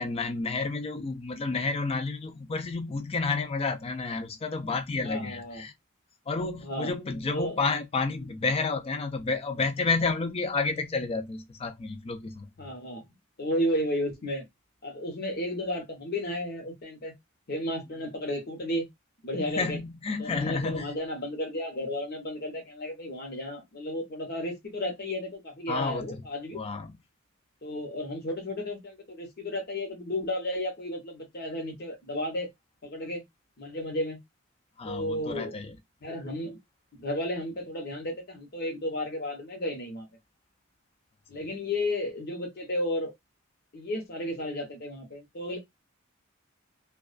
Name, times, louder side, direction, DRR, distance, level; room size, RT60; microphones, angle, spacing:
voice 1, 0.0-5.7 6.3-12.5 19.5-20.9 25.7-26.1 26.5-26.9 34.8-35.8 41.4-41.5, left 4 dB, 30° left, 0.4 m, -30 dB
voice 2, 5.0-5.6 6.6-6.9 7.3-7.6 12.6-13.0 13.4-14.5 14.8-17.1 17.5-18.9 19.2-19.8 20.2-26.6 27.6-32.5 32.8-33.2 33.6-34.2 34.8-35.5 36.0-36.6 37.0-40.1 41.3-43.1 43.7-45.6, left 1 dB, 50° left, 0.8 m, -33 dB
2.3 x 2.2 x 2.4 m
head